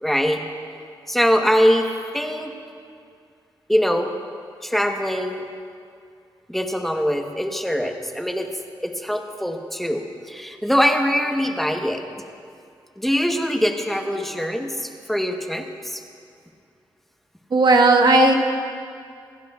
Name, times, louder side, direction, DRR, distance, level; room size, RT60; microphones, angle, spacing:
voice 1, 0.0-0.4 1.1-1.9 2.1-2.5 3.7-4.1 4.6-5.5 6.5-8.5 8.8-12.0 13.0-16.0, equal, ahead, 4 dB, 1.0 m, -22 dB
voice 2, 17.5-18.3, right 2 dB, 55° right, 4 dB, 1.1 m, -14 dB
26.5 x 11.0 x 2.3 m, 2.3 s
wide cardioid pair, 100°, 9 cm